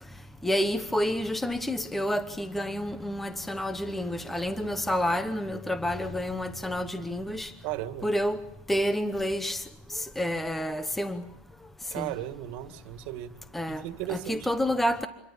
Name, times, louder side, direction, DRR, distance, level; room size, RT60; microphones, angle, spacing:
voice 1, 0.4-7.5 8.0-8.4 8.7-9.6 9.9-11.2 12.0-12.1 13.5-13.8 14.1-15.1, equal, 5° left, 1.0 m, -29 dB
voice 2, 7.6-8.1 11.9-13.3 13.7-14.5, right 14 dB, 50° right, 2.1 m, -35 dB
27.0 x 22.5 x 7.1 m
supercardioid pair, 165°, 5 cm